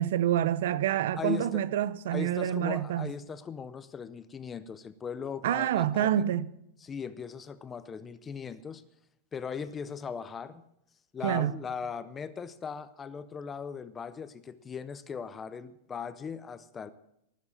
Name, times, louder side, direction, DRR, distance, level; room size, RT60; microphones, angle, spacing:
voice 1, 0.0-3.1 5.4-6.5 11.2-11.5, right 11 dB, 65° right, 0.7 m, -27 dB
voice 2, 1.2-1.6 2.1-6.3 6.8-8.8 9.3-10.6 11.1-16.9, left 6 dB, 15° left, 0.5 m, -38 dB
19.0 x 7.4 x 7.0 m
supercardioid pair, 175°, 0 cm